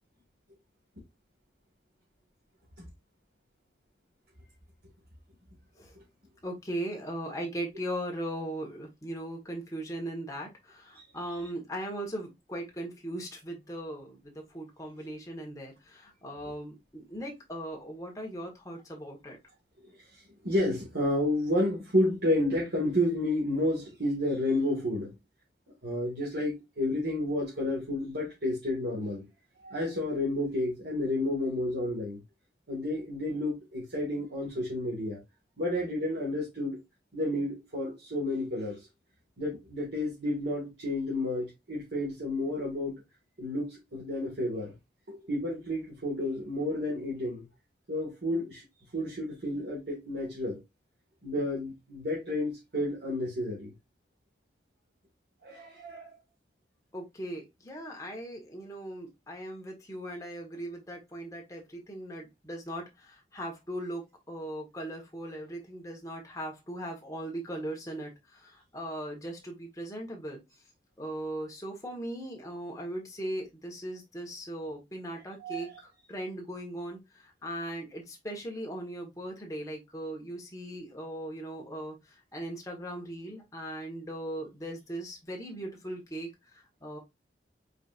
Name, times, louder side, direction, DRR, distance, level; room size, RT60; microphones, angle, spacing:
voice 1, 6.4-19.4 56.9-70.4 71.0-87.0, right 1 dB, 20° left, 1.4 m, -39 dB
voice 2, 20.4-25.2 25.8-29.2 29.6-32.2 32.7-35.2 35.6-36.8 37.1-38.9 39.4-42.9 43.4-44.7 45.1-47.4 47.9-48.6 48.9-50.6 51.2-53.7 55.4-56.2 75.4-75.6, left 1 dB, 80° right, 1.9 m, -31 dB
4.9 x 4.2 x 2.5 m
head